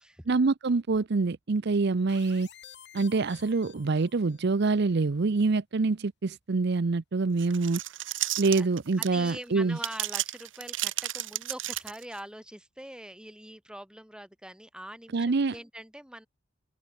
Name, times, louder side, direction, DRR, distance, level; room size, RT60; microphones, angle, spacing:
voice 1, 0.3-2.5 2.9-7.8 8.4-9.8 15.1-15.5, right 3 dB, 60° right, 0.6 m, -26 dB
sound 1, 2.1-4.5, left 9 dB, 65° left, 5.2 m, -52 dB
sound 2, 7.4-9.3 9.8-12.2, right 14 dB, 75° right, 2.0 m, -32 dB
voice 2, 9.0-16.3, right 1 dB, 5° right, 2.4 m, -43 dB
head